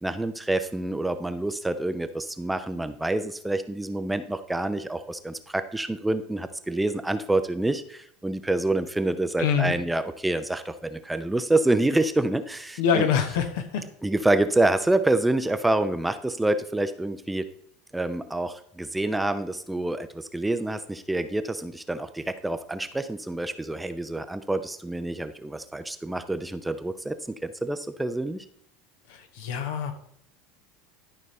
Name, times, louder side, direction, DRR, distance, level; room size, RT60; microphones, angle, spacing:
voice 1, 0.0-13.1 14.0-17.5 17.9-28.4, right 2 dB, 10° right, 10 dB, 0.6 m, -27 dB
voice 2, 9.4-9.7 12.8-13.8 29.1-29.9, left 7 dB, 65° left, 6 dB, 1.2 m, -25 dB
12.0 x 5.4 x 3.2 m, 0.65 s
hypercardioid pair, 80°, 0 cm